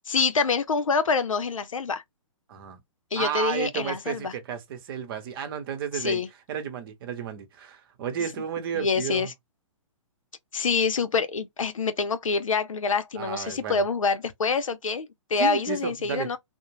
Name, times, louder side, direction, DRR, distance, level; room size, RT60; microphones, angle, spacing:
voice 1, 0.1-2.0 3.1-4.3 5.9-6.3 8.7-9.3 10.5-16.4, left 5 dB, 85° left, 0.5 m, -26 dB
voice 2, 2.5-2.8 3.2-6.2 6.5-9.3 13.2-13.8 15.4-16.3, right 8 dB, 45° right, 0.9 m, -32 dB
2.5 x 2.1 x 3.0 m
hypercardioid pair, 130°, 17 cm